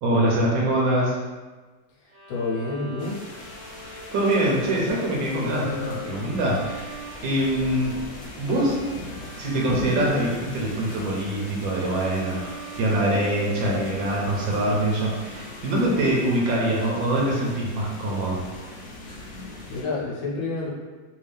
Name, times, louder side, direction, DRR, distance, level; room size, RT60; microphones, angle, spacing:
voice 1, 0.0-1.2 4.1-6.9 7.2-8.0 8.4-8.8 9.4-18.4, right 1 dB, 75° right, -3 dB, 1.5 m, -24 dB
Bowed string instrument, 2.1-17.4, left 2 dB, 40° right, 0.7 m, -42 dB
voice 2, 2.3-3.2 19.7-20.7, left 3 dB, 80° left, -5 dB, 1.6 m, -28 dB
sound 1, 3.0-19.8, left 2 dB, 60° left, 1.0 m, -40 dB
3.6 x 2.7 x 3.3 m, 1.3 s
omnidirectional pair, 2.1 m